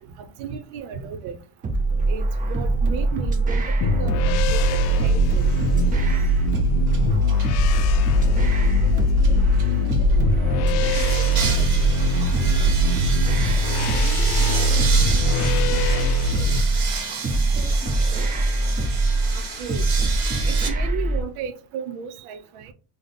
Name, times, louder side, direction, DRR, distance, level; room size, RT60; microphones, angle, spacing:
voice 1, 0.2-1.4 2.1-5.6 19.3-19.8 20.5-22.7, right 7 dB, 90° right, 0.7 m, -34 dB
sound 1, 1.6-21.2, right 2 dB, 20° right, 0.3 m, -23 dB
sound 2, 3.8-16.6, left 2 dB, 75° left, 0.5 m, -22 dB
sound 3, 5.5-5.8 6.1-7.6 9.2-10.2 10.9-20.7, right 5 dB, 50° right, 1.3 m, -32 dB
voice 2, 8.9-9.5 9.8-12.8 13.6-16.8 17.3-18.4, left 2 dB, 10° left, 0.7 m, -43 dB
3.3 x 2.0 x 3.9 m
cardioid pair, 125°, 49 cm